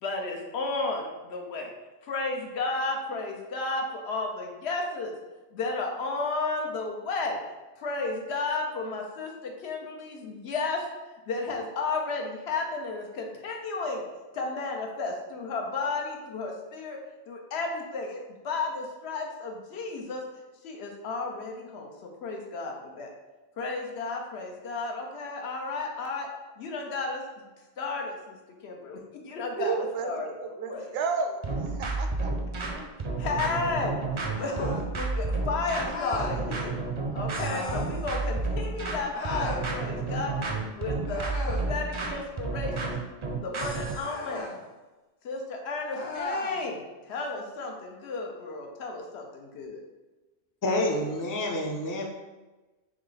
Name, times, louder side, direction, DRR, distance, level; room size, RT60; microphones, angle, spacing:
voice 1, 0.0-1.7 2.0-5.1 5.5-7.4 7.8-10.8 11.3-14.0 14.3-17.0 17.3-20.2 20.6-23.1 23.6-26.3 26.6-27.2 27.8-28.4 28.6-30.3 30.7-30.9 33.2-36.7 37.1-40.3 40.7-43.0 43.4-44.5 45.2-46.8 47.1-49.8, left 3 dB, 85° left, 1 dB, 1.0 m, -33 dB
voice 2, 29.6-30.1 30.4-32.3, right 5 dB, 75° right, 6 dB, 0.8 m, -32 dB
sound 1, 31.4-44.1, right 3 dB, 45° right, 0.4 m, -31 dB
sound 2, 34.3-34.9 35.8-36.4 37.4-37.9 39.1-39.7 41.1-41.7 44.0-44.6 45.9-46.6, left 2 dB, 60° left, 0.8 m, -37 dB
voice 3, 50.6-52.1, left 1 dB, 35° left, 2 dB, 0.3 m, -28 dB
3.5 x 3.2 x 3.9 m, 1.2 s
omnidirectional pair, 1.1 m